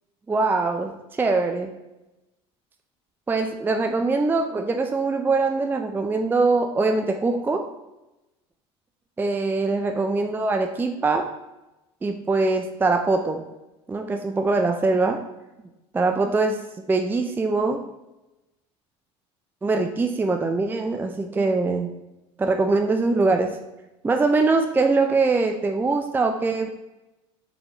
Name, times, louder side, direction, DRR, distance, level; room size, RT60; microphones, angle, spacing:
voice 1, 0.3-1.7 3.3-7.6 9.2-11.3 12.0-13.4 13.9-15.2 15.9-16.6 16.9-17.8 19.6-21.9 22.4-23.6 24.0-26.7, right 3 dB, 15° right, 5 dB, 0.4 m, -22 dB
3.9 x 3.6 x 2.9 m, 0.98 s
supercardioid pair, 85°, 15 cm